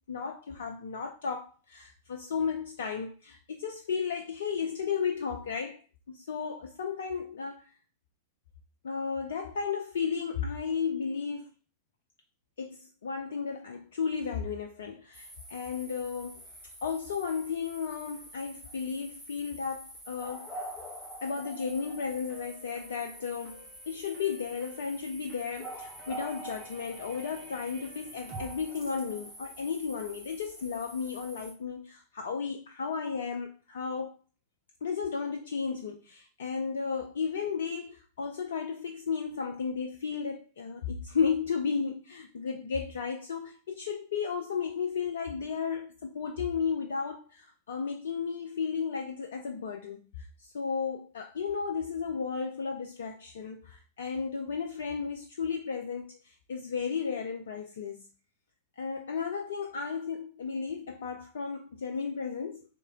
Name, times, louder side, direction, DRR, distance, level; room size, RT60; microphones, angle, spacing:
voice 1, 0.1-5.8 6.1-7.7 8.8-11.5 12.6-16.4 16.8-20.6 21.2-34.1 34.8-58.0 58.8-62.7, left 6 dB, 65° left, 0.3 m, -34 dB
sound 1, 15.1-31.5, right 1 dB, ahead, 1.6 m, -46 dB
sound 2, 21.8-29.0, right 2 dB, 40° right, 0.9 m, -52 dB
3.6 x 3.1 x 2.3 m
figure-of-eight pair, 90°, 0 cm